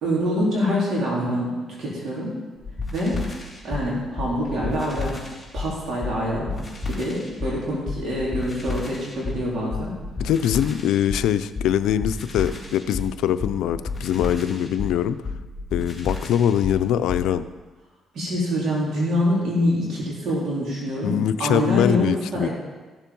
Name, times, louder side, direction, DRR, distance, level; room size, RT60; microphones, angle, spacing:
voice 1, 0.0-1.5 1.8-2.3 2.9-3.2 3.6-5.2 5.5-6.6 6.8-9.9 18.1-22.5, equal, 65° right, -5 dB, 4.1 m, -25 dB
sound 1, 2.6-17.3, left 3 dB, 10° left, 4.2 m, -32 dB
voice 2, 10.2-15.2 15.7-17.5 21.0-22.5, left 10 dB, 85° left, 12 dB, 0.5 m, -23 dB
14.5 x 7.3 x 5.4 m, 1.3 s
cardioid pair, 90°, 0 cm